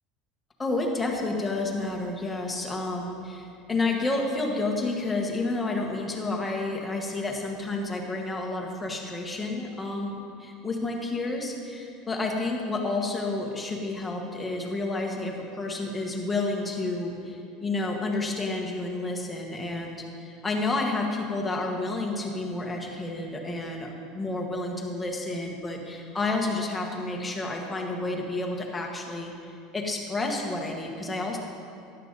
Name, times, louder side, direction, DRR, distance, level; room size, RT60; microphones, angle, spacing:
voice 1, 0.6-29.3 29.7-31.4, left 2 dB, 10° left, 0 dB, 1.6 m, -30 dB
12.5 x 11.0 x 4.1 m, 2.5 s
supercardioid pair, 140°, 0 cm